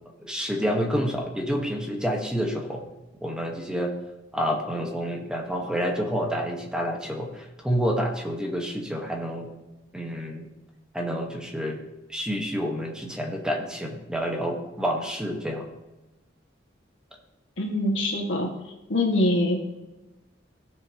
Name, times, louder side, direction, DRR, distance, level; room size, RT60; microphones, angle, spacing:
voice 1, 0.2-2.8 3.2-3.9 4.3-9.5 9.9-10.5 10.9-11.8 12.1-15.7, equal, 5° right, 1 dB, 1.2 m, -28 dB
voice 2, 17.6-18.5 18.9-19.6, left 1 dB, 80° left, 1 dB, 1.7 m, -24 dB
15.5 x 6.5 x 2.9 m, 1.0 s
head